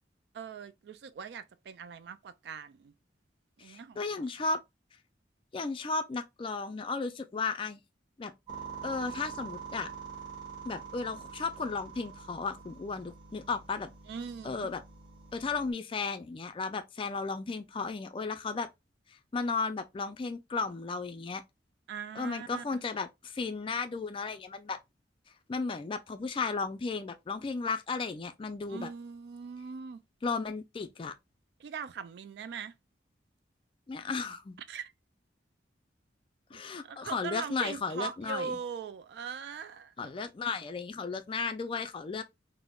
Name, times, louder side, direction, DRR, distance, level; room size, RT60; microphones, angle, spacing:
voice 1, 0.3-2.9 3.6-4.0 14.1-14.7 21.9-22.8 28.7-30.0 31.6-32.7 34.7-34.9 36.5-40.1, right 6 dB, 65° right, 0.3 m, -41 dB
voice 2, 3.6-4.6 5.5-7.8 8.2-8.3 8.8-9.9 10.6-13.9 14.4-14.8 15.3-18.7 19.3-21.4 22.2-24.8 25.5-28.9 30.2-31.1 33.9-34.6 36.5-38.6 40.0-42.2, left 4 dB, 30° left, 0.3 m, -34 dB
sound 1, 8.5-15.7, right 6 dB, 25° right, 1.4 m, -45 dB
3.5 x 2.0 x 2.3 m
head